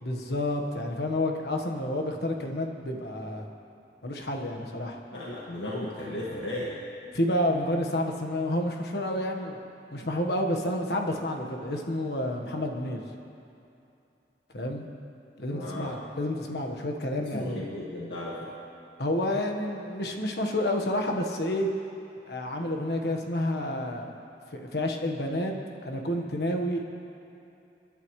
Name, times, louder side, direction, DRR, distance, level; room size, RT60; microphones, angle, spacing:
voice 1, 0.0-3.4 4.0-5.0 7.1-9.6 9.9-13.0 14.5-14.9 15.4-17.6 19.0-21.7 22.3-24.0 24.5-25.5 25.8-26.8, left 1 dB, 65° left, 2 dB, 1.4 m, -29 dB
voice 2, 5.1-6.8 15.5-16.0 17.2-18.5, left 1 dB, 90° left, -6 dB, 2.0 m, -35 dB
30.0 x 11.0 x 3.3 m, 2.7 s
head